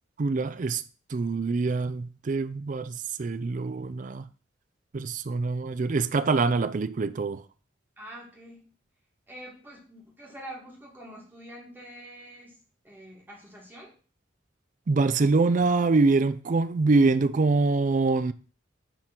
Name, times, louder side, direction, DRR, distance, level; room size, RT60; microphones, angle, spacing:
voice 1, 0.2-0.8 1.1-4.2 4.9-7.4 14.9-18.3, right 3 dB, 40° right, 0.4 m, -24 dB
voice 2, 8.0-8.7 9.3-12.5 12.8-13.9, right 1 dB, 10° right, 2.0 m, -45 dB
6.7 x 3.7 x 5.9 m
head